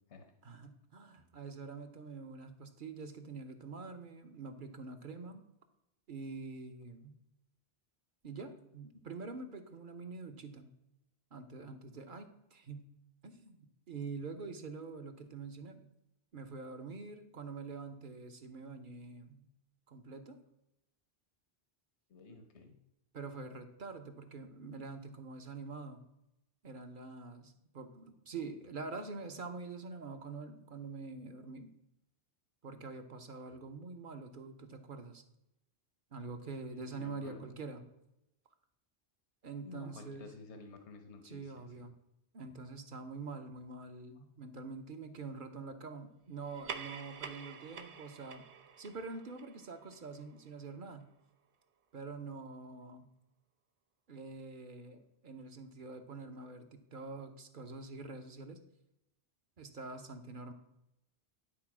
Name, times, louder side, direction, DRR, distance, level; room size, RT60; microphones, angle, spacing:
voice 1, 0.4-5.4 6.1-7.1 8.2-10.7 11.3-12.9 13.2-15.8 16.3-19.5 19.9-20.4 22.3-22.4 23.1-26.0 26.6-31.7 32.6-35.2 36.1-37.8 39.4-40.3 41.2-41.9 42.3-48.5 48.8-51.1 51.9-53.1 54.1-58.6 59.6-60.5, right 4 dB, 50° right, 7 dB, 1.0 m, -45 dB
voice 2, 22.1-22.7 36.7-37.5 39.6-41.8, left 3 dB, 80° left, 5 dB, 1.3 m, -52 dB
sound 1, 46.4-51.3, right 6 dB, 80° right, 1.0 m, -48 dB
10.5 x 4.2 x 6.0 m, 0.86 s
omnidirectional pair, 1.1 m